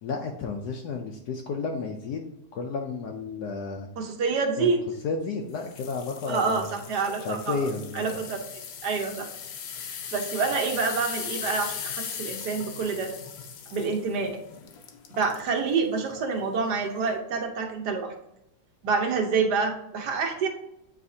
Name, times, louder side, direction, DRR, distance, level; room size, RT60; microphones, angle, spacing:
voice 1, 0.0-2.2 2.5-3.9 4.6-4.7 5.0-6.7 7.2-8.2, left 4 dB, 70° left, 2 dB, 1.1 m, -32 dB
voice 2, 4.0-4.8 6.3-7.7 7.9-8.4 8.8-9.3 9.8-13.1 13.7-14.4 15.1-18.1 18.8-20.5, right 4 dB, 70° right, 3 dB, 1.4 m, -27 dB
sound 1, 5.6-15.5 16.0-16.2 16.8-16.9, left 7 dB, 85° left, 1.5 m, -39 dB
8.6 x 4.2 x 2.7 m, 0.85 s
omnidirectional pair, 1.9 m